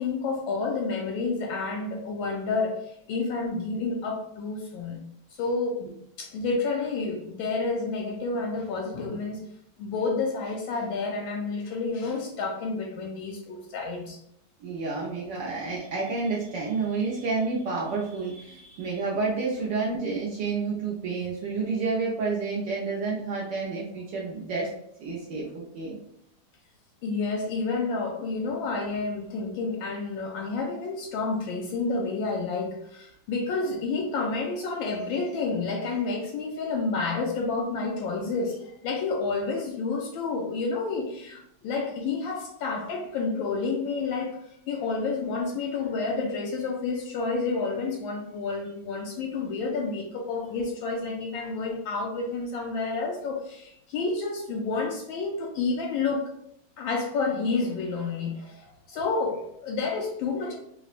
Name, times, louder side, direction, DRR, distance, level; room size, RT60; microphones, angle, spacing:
voice 1, 0.0-5.0 5.4-5.8 6.2-9.4 9.8-14.2 27.0-44.4 44.7-56.3 56.8-60.6, left 4 dB, 75° left, 1 dB, 1.2 m, -30 dB
voice 2, 14.6-24.7 25.0-26.0, right 4 dB, 70° right, -5 dB, 1.1 m, -30 dB
4.8 x 2.1 x 2.4 m, 0.73 s
omnidirectional pair, 2.4 m